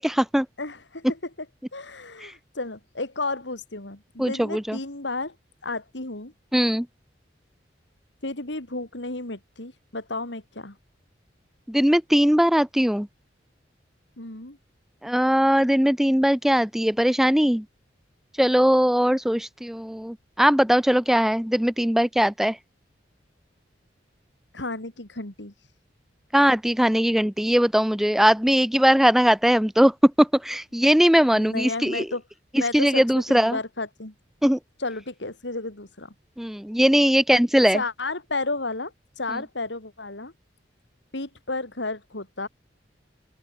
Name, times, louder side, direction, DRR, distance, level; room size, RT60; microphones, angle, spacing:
voice 1, 0.0-0.5 2.2-2.3 4.2-4.8 6.5-6.9 11.7-13.1 15.0-17.6 18.4-22.6 26.3-32.1 32.7-33.6 34.4-34.6 36.4-37.8, equal, ahead, 0.4 m, -20 dB
voice 2, 0.6-1.5 1.7-5.3 5.6-6.3 8.2-10.8 14.2-14.6 24.5-25.5 31.3-32.2 32.5-34.1 34.8-36.1 37.7-40.3 41.1-42.5, left 2 dB, 75° left, 3.3 m, -32 dB
open air
head